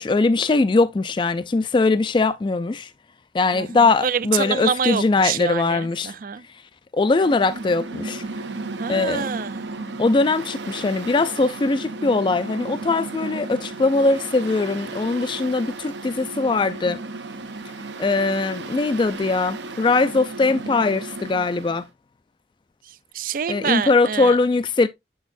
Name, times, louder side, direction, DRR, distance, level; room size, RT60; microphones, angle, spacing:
voice 1, 0.0-2.9 3.3-6.1 6.9-8.2 8.9-9.3 10.0-17.0 18.0-21.8 23.5-24.9, left 3 dB, 25° left, 0.3 m, -21 dB
voice 2, 3.5-6.4 8.8-9.7 23.1-24.4, right 7 dB, 50° right, 0.4 m, -26 dB
Mechanical fan, 7.0-21.8, right 3 dB, 85° right, 0.8 m, -34 dB
6.9 x 6.2 x 2.5 m
head